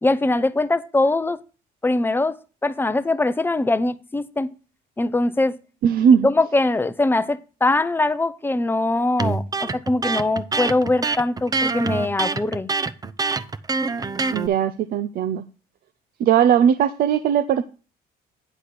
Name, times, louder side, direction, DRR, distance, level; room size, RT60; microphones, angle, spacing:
voice 1, 0.0-1.4 1.8-2.3 2.6-4.5 5.0-5.6 6.2-12.7, left 2 dB, 10° left, 0.7 m, -22 dB
voice 2, 5.8-6.3 14.3-15.4 16.2-17.6, right 8 dB, 60° right, 0.6 m, -18 dB
Electric guitar, 9.2-14.5, right 4 dB, 20° right, 0.7 m, -25 dB
9.9 x 4.2 x 6.6 m
cardioid pair, 110°, 17 cm